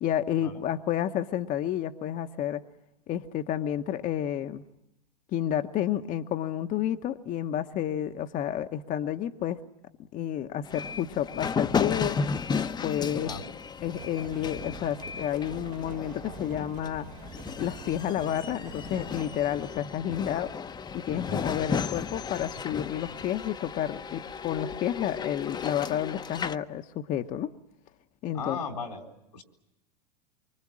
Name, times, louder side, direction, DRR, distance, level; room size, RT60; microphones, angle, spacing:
voice 1, 0.0-2.6 3.1-4.6 5.3-9.6 10.1-12.2 12.8-13.3 13.8-17.1 17.6-20.5 20.9-27.5 28.2-28.6, left 11 dB, 40° left, 7 dB, 1.1 m, -30 dB
sound 1, 10.6-26.6, left 5 dB, 20° left, 0.9 m, -34 dB
sound 2, 13.8-19.4, right 7 dB, 85° right, 3.3 m, -46 dB
voice 2, 28.3-29.0 29.3-29.4, left 5 dB, 85° left, 5 dB, 3.9 m, -36 dB
25.5 x 24.5 x 7.5 m, 0.91 s
hypercardioid pair, 95°, 20 cm